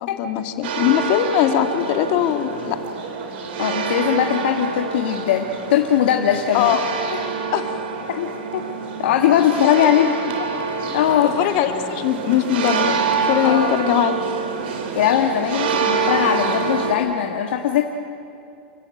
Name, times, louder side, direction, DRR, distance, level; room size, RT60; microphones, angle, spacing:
voice 1, 0.0-2.8 6.5-6.8 7.5-7.7 9.6-9.8 11.2-14.2, left 11 dB, 45° left, 7 dB, 1.9 m, -21 dB
sound 1, 0.6-16.9, right 5 dB, 70° right, 3.4 m, -26 dB
voice 2, 3.6-6.8 8.1-8.6 9.0-10.1 10.9-11.5 13.4-13.7 14.9-17.8, left 10 dB, 75° left, 3 dB, 1.6 m, -20 dB
28.5 x 14.5 x 9.3 m, 2.5 s
supercardioid pair, 145°, 6 cm